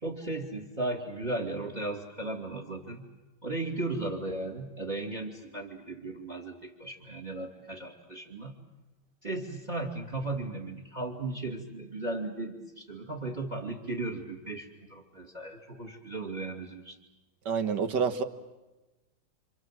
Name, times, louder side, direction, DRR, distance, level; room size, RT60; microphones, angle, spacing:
voice 1, 0.0-3.1 3.4-8.6 9.2-17.0, right 2 dB, 20° right, 2 dB, 2.5 m, -36 dB
voice 2, 17.5-18.2, right 6 dB, 60° right, 8 dB, 2.0 m, -28 dB
28.5 x 26.5 x 7.5 m, 1.1 s
omnidirectional pair, 2.2 m